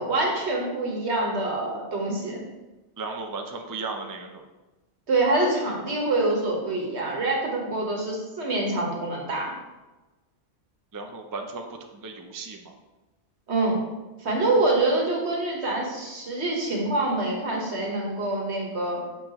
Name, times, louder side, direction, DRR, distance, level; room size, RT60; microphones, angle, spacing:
voice 1, 0.0-2.4 5.1-9.5 13.5-13.8 14.2-19.0, right 2 dB, 70° right, -1 dB, 1.6 m, -25 dB
voice 2, 3.0-4.4 10.9-12.7, right 3 dB, 30° right, 3 dB, 0.4 m, -35 dB
7.0 x 5.8 x 3.0 m, 1.1 s
omnidirectional pair, 1.2 m